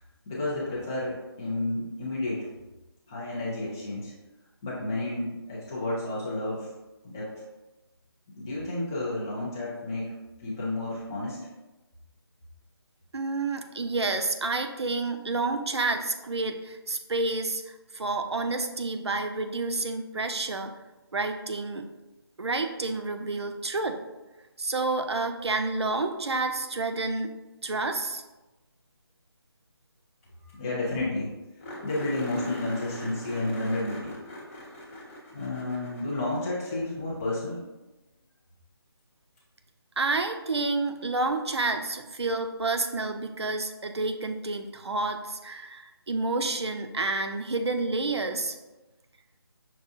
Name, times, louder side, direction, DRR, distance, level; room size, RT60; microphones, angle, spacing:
voice 1, 0.3-2.4 3.1-4.1 4.6-6.7 7.0-7.3 8.4-10.1 10.4-11.4 30.5-31.3 31.8-34.1 35.3-37.6, left 2 dB, 10° left, -8 dB, 0.4 m, -31 dB
voice 2, 13.1-17.6 17.9-20.7 21.1-21.9 22.4-24.0 24.6-27.3 27.6-28.2 40.0-48.5, right 3 dB, 80° right, 6 dB, 0.6 m, -29 dB
sound 1, 30.2-30.3 30.5-30.6 30.9-31.0 31.6-37.0 39.4-39.5 42.3-42.4, left 1 dB, 30° left, 1.0 m, -41 dB
6.2 x 2.2 x 2.6 m, 1.1 s
figure-of-eight pair, 160°, 14 cm